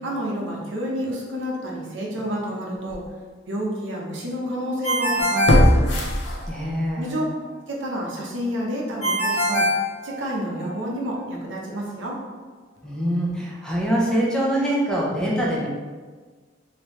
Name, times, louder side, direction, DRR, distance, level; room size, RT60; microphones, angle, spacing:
voice 1, 0.0-3.0 3.5-5.8 7.0-7.2 7.7-9.6 10.0-12.2, equal, 85° right, -2 dB, 0.8 m, -29 dB
sound 1, 2.2-2.3 2.9-3.0 5.5-6.9 7.3-7.4, equal, 70° left, 0.6 m, -19 dB
Ringtone, 4.8-6.5 9.0-10.6, equal, 35° left, 1.0 m, -23 dB
voice 2, 6.5-7.2 12.8-15.7, right 1 dB, 5° left, -5 dB, 0.7 m, -24 dB
3.4 x 2.9 x 3.0 m, 1.4 s
head